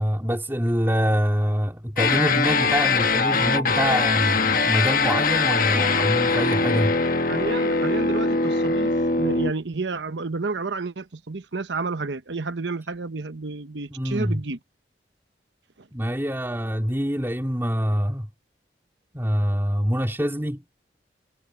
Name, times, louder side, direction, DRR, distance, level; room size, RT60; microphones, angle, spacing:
voice 1, 0.0-7.0 13.9-14.4 15.9-18.3 19.1-20.6, equal, 15° right, 3.3 m, -25 dB
sound 1, 2.0-9.5, left 4 dB, 50° left, 1.2 m, -22 dB
voice 2, 7.3-14.6 15.8-15.9, right 3 dB, 75° right, 1.0 m, -30 dB
head